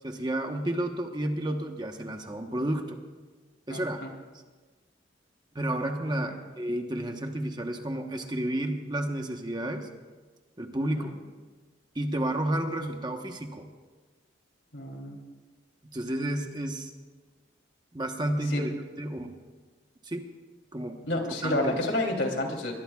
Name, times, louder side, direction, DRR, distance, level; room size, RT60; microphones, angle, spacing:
voice 1, 0.0-3.0 3.7-4.1 5.5-9.9 10.6-11.1 11.9-13.7 15.9-16.9 17.9-19.4 20.0-20.3 20.7-21.0 21.4-21.8, right 1 dB, 25° right, 4 dB, 1.1 m, -31 dB
voice 2, 3.7-4.1 6.1-6.2 10.8-11.1 14.7-15.2 18.5-18.6 21.1-22.8, left 1 dB, 75° left, 1 dB, 3.2 m, -30 dB
26.5 x 22.0 x 2.4 m, 1.4 s
head